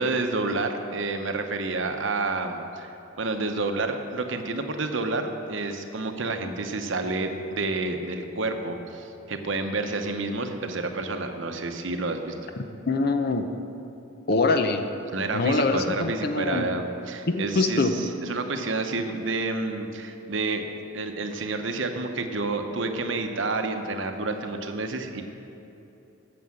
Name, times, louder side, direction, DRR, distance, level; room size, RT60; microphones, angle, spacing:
voice 1, 0.0-2.9 3.2-12.3 15.1-20.6 20.9-25.2, right 3 dB, 65° right, 6 dB, 0.8 m, -29 dB
voice 2, 12.9-13.4 14.3-14.8 15.3-16.7 17.3-17.9, left 3 dB, 50° left, 7 dB, 0.7 m, -24 dB
9.4 x 6.9 x 7.6 m, 2.9 s
head